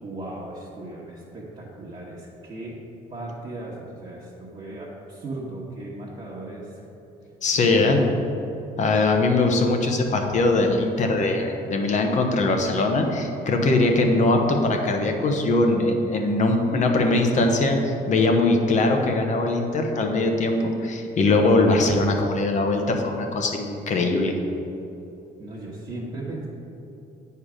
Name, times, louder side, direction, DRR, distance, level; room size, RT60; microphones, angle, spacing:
voice 1, 0.0-2.8 3.1-6.9 7.5-8.2 25.4-26.5, right 2 dB, 30° right, -7 dB, 1.3 m, -36 dB
voice 2, 7.4-8.0 8.8-24.3, left 2 dB, 45° left, 3 dB, 1.0 m, -21 dB
8.4 x 4.7 x 5.0 m, 2.9 s
cardioid pair, 110°, 17 cm